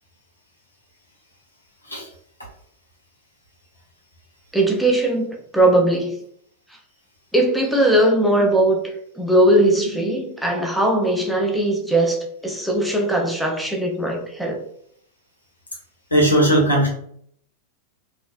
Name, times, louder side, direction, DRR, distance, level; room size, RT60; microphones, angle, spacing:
voice 1, 4.5-6.2 7.3-14.6, right 1 dB, ahead, 2 dB, 0.5 m, -19 dB
voice 2, 16.1-16.9, right 1 dB, 80° left, -2 dB, 1.1 m, -17 dB
3.7 x 2.4 x 2.5 m, 0.65 s
figure-of-eight pair, 90°, 0 cm